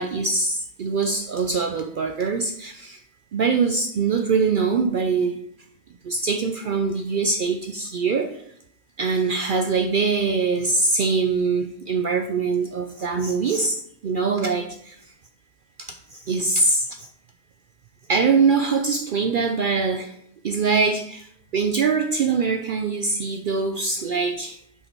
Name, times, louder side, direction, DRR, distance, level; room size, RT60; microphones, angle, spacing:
voice 1, 0.0-3.0 3.3-5.4 6.0-8.4 9.0-15.0 16.1-16.9 18.1-20.1 20.4-24.6, right 4 dB, 70° right, 6 dB, 0.5 m, -23 dB
5.7 x 5.6 x 4.5 m, 0.70 s
omnidirectional pair, 1.4 m